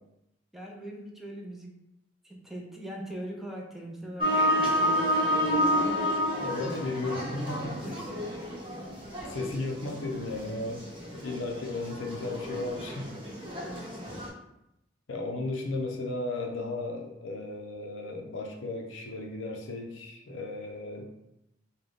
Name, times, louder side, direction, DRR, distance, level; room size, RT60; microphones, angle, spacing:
voice 1, 0.5-1.7 2.2-6.3 7.7-8.4 13.5-14.0, right 1 dB, ahead, -1 dB, 0.5 m, -42 dB
sound 1, 4.2-14.3, equal, 30° right, 1.0 m, -30 dB
voice 2, 6.4-8.0 9.3-10.8 11.2-13.1 15.1-21.1, left 2 dB, 80° left, 2 dB, 0.6 m, -35 dB
3.7 x 2.2 x 3.4 m, 0.85 s
head